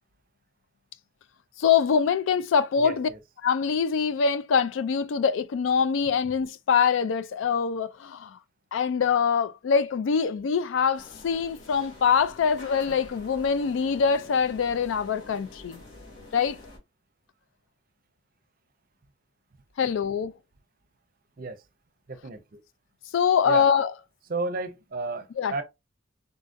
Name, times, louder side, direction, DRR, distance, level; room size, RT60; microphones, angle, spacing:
voice 1, 1.6-3.1 3.4-8.4 8.7-15.8 16.3-16.6 19.8-20.3 23.1-23.9 25.4-25.6, left 6 dB, 80° left, 0.3 m, -24 dB
voice 2, 2.8-3.2 21.4-21.6 22.1-22.6 23.5-23.7 24.3-25.6, right 3 dB, 50° right, 0.6 m, -33 dB
sound 1, 10.9-16.8, left 2 dB, 60° left, 1.9 m, -47 dB
3.8 x 2.5 x 2.5 m
head